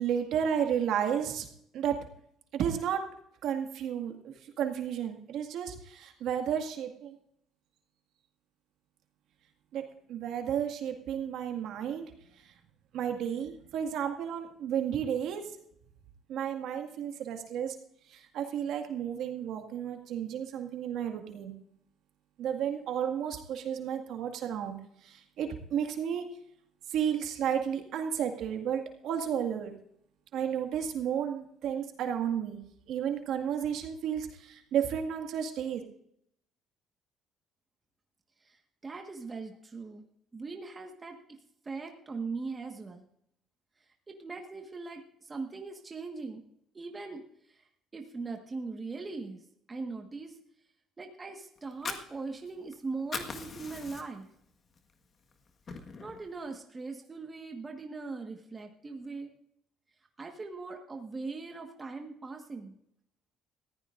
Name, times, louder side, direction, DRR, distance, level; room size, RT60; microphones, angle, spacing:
voice 1, 0.0-1.5 1.7-2.0 2.5-3.0 3.4-7.2 9.7-9.8 10.1-12.1 12.4-12.5 12.9-15.5 16.3-17.8 18.1-21.5 22.4-26.2 26.9-29.7 30.3-32.6 32.9-35.8, right 8 dB, 70° right, 4 dB, 2.0 m, -32 dB
voice 2, 38.4-40.0 40.3-41.2 41.6-43.0 44.1-46.4 46.7-47.2 47.5-47.6 47.9-49.4 49.7-50.4 51.0-54.3 56.0-59.3 60.2-62.8, right 4 dB, 20° right, 3 dB, 1.6 m, -40 dB
Fire, 51.6-52.7 53.0-54.3 54.8-54.9 55.3-56.3, left 5 dB, 35° left, 1.6 m, -40 dB
20.0 x 15.0 x 2.6 m, 0.70 s
cardioid pair, 130°, 0 cm